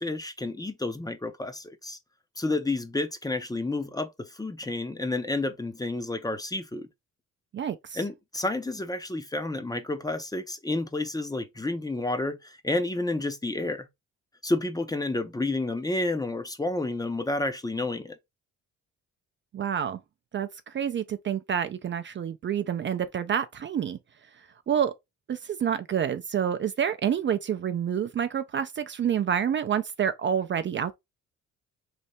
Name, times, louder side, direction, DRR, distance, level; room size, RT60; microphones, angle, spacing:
voice 1, 0.0-2.0 2.4-6.9 8.0-13.9 14.4-18.2, left 2 dB, 10° left, 0.6 m, -30 dB
voice 2, 7.5-8.0 19.5-20.0 20.3-24.0 24.7-24.9 25.3-31.0, right 8 dB, 40° right, 0.4 m, -28 dB
3.3 x 2.7 x 4.1 m
cardioid pair, 90°, 30 cm